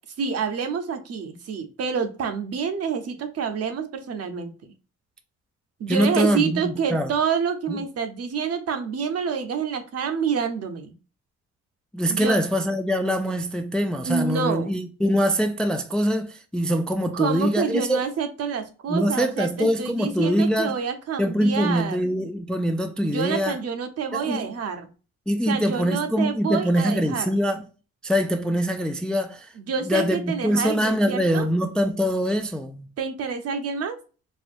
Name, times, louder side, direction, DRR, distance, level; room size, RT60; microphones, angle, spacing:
voice 1, 0.2-4.7 5.8-10.9 12.1-12.4 14.0-14.8 17.1-22.0 23.0-24.9 25.5-27.3 29.6-31.5 33.0-34.0, right 6 dB, 55° right, 0.8 m, -28 dB
voice 2, 5.9-7.1 7.7-7.8 11.9-18.1 18.9-20.7 21.2-23.6 24.1-24.5 25.3-27.6 28.0-29.5 29.8-32.9, equal, 5° left, 0.3 m, -23 dB
4.3 x 2.1 x 2.5 m
cardioid pair, 90°, 30 cm